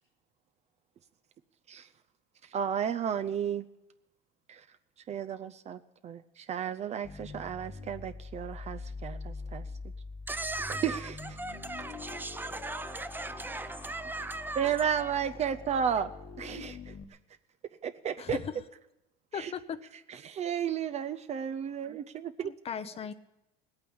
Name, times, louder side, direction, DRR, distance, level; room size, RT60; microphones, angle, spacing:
voice 1, 2.5-3.6 4.5-4.6 5.1-9.7 10.8-11.1 14.6-16.1 16.4-16.9 17.8-18.4 19.3-19.5 20.1-22.5, right 8 dB, 35° right, 0.6 m, -33 dB
sound 1, 7.0-17.0, left 4 dB, 50° left, 1.4 m, -44 dB
voice 2, 10.3-15.1, right 2 dB, 10° right, 0.9 m, -38 dB
voice 3, 18.2-18.6 19.3-19.9 22.4-23.1, left 7 dB, 30° left, 0.7 m, -37 dB
18.0 x 8.9 x 8.6 m
supercardioid pair, 125°, 20 cm